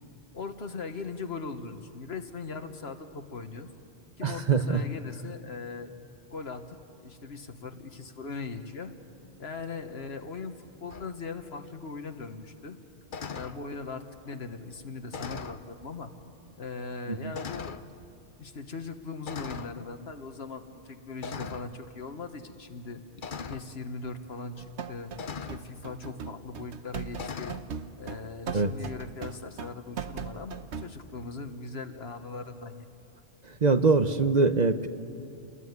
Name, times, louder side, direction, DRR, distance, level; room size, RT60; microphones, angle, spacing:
voice 1, 0.3-3.7 4.2-5.9 6.3-8.9 9.4-10.5 10.8-12.8 13.3-16.1 16.6-17.8 18.4-23.0 23.5-25.1 25.5-27.6 28.0-32.9, left 4 dB, 70° left, 7 dB, 1.6 m, -39 dB
voice 2, 4.2-4.8 17.1-17.3 28.5-28.7 33.6-34.9, right 4 dB, 45° right, 8 dB, 0.9 m, -23 dB
sound 1, 10.9-11.1 13.1-13.6 15.1-15.6 16.5-16.6 17.3-17.9 19.3-19.8 21.2-21.7 23.2-23.7 25.2-25.6 27.1-27.6, left 5 dB, 50° left, 1.0 m, -38 dB
sound 2, 24.6-30.9, right 7 dB, 85° right, 1.2 m, -39 dB
29.0 x 21.0 x 9.5 m, 2.6 s
omnidirectional pair, 1.1 m